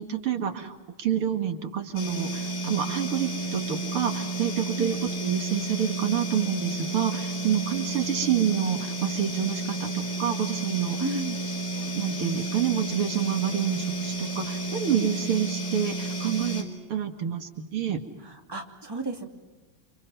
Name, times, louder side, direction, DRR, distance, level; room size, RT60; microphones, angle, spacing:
voice 1, 0.0-11.0 11.7-18.0, right 9 dB, 90° right, 5 dB, 2.8 m, -28 dB
sound 1, 2.0-16.6, right 2 dB, 55° left, 5.3 m, -31 dB
voice 2, 11.0-11.5 18.2-19.3, right 2 dB, 10° right, 2 dB, 2.5 m, -33 dB
29.5 x 26.5 x 5.7 m, 1.2 s
omnidirectional pair, 2.3 m